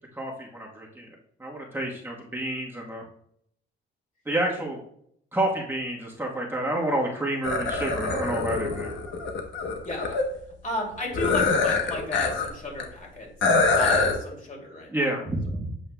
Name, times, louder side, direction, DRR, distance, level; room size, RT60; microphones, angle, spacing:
voice 1, 0.2-1.1 1.4-3.0 4.3-4.8 5.3-9.0 14.9-15.7, right 1 dB, 10° right, -3 dB, 1.2 m, -29 dB
sound 1, 7.4-10.2 11.1-12.5 12.8-12.9 13.4-14.2, left 4 dB, 70° left, 1.0 m, -24 dB
voice 2, 9.8-10.2 10.6-15.0, left 1 dB, 40° left, -1 dB, 2.5 m, -34 dB
8.0 x 5.4 x 2.2 m, 0.69 s
cardioid pair, 90°, 20 cm